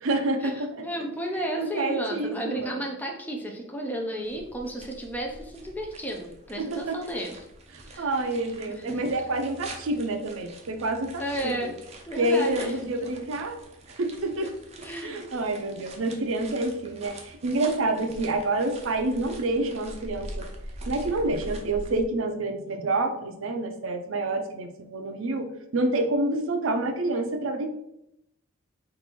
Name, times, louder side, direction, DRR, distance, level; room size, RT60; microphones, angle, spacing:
voice 1, 0.0-0.9 1.6-2.8 6.6-7.0 7.7-11.7 12.2-13.6 14.0-14.5 15.0-20.5 20.9-27.7, right 2 dB, 75° right, 6 dB, 0.6 m, -28 dB
voice 2, 0.8-7.4 7.8-8.1 8.8-9.0 11.2-11.8 12.1-12.7 14.4-14.5 14.8-15.2, right 1 dB, 10° left, 1 dB, 0.6 m, -32 dB
Two People Walking Along a Gravel Road, 4.2-22.0, right 1 dB, 30° right, 0.7 m, -44 dB
4.1 x 2.6 x 4.5 m, 0.79 s
head